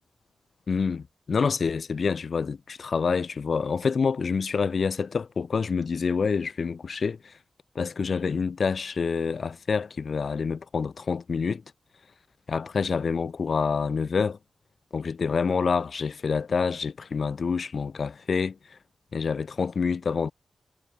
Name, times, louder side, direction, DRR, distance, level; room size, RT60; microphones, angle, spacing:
voice 1, 0.7-7.4 7.7-11.6 12.5-14.4 14.9-18.8 19.1-20.3, left 5 dB, 60° left, 1.3 m, -27 dB
wide cardioid pair, 125°, 0 cm